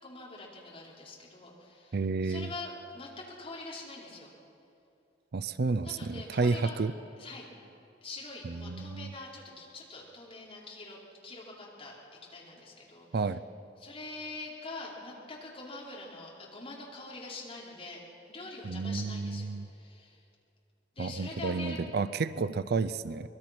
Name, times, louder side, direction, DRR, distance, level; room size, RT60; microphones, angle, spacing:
voice 1, 0.0-2.0 2.2-4.3 5.8-6.8 7.2-7.5 8.0-12.0 12.3-13.2 13.8-18.0 18.3-20.2 20.9-21.8, left 2 dB, 30° left, -4 dB, 4.6 m, -44 dB
voice 2, 1.9-2.5 5.3-6.9 8.4-9.1 13.1-13.4 18.6-19.7 21.0-23.3, right 4 dB, 60° right, 13 dB, 0.5 m, -31 dB
24.0 x 21.0 x 6.1 m, 2.6 s
head